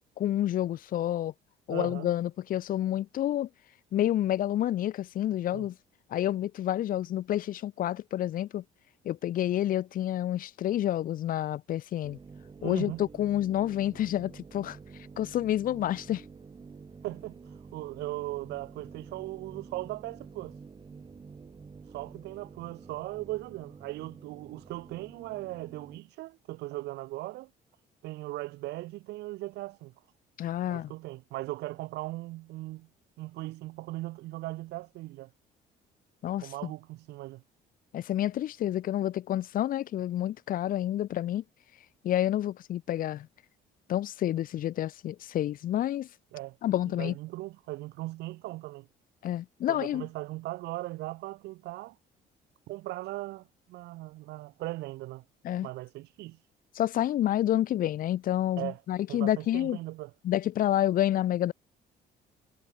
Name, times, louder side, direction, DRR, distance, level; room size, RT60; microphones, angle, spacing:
voice 1, 0.2-1.3 1.7-3.5 3.9-5.7 6.1-8.6 9.0-12.2 12.6-14.8 15.2-16.2 30.4-30.9 36.2-36.7 37.9-41.4 42.0-43.3 43.9-46.1 46.6-47.2 49.2-50.1 55.4-55.7 56.7-59.8 60.2-61.5, left 12 dB, 55° left, 0.7 m, -29 dB
voice 2, 1.7-2.1 5.5-5.7 12.6-13.0 17.0-17.4 17.7-20.6 21.9-27.5 28.0-29.9 30.7-32.9 33.2-35.3 36.4-37.4 46.3-46.6 47.0-48.9 49.7-52.0 52.7-55.2 55.6-56.4 58.6-58.8 59.1-60.1, right 18 dB, 85° right, 3.9 m, -38 dB
sound 1, 12.0-26.0, right 5 dB, 25° right, 3.8 m, -49 dB
cardioid pair, 110°, 17 cm